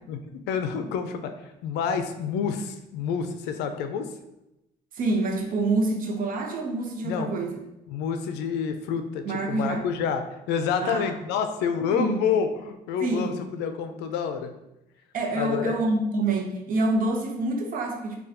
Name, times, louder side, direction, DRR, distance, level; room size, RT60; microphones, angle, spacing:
voice 1, 0.1-4.1 7.0-7.3 7.9-14.5 15.3-15.8, left 6 dB, 85° left, 7 dB, 0.4 m, -28 dB
voice 2, 4.9-7.6 9.2-9.9 10.8-11.1 11.9-12.2 13.0-13.4 15.1-18.2, right 2 dB, 55° right, 3 dB, 0.6 m, -26 dB
4.0 x 2.3 x 2.6 m, 0.90 s
cardioid pair, 110°, 17 cm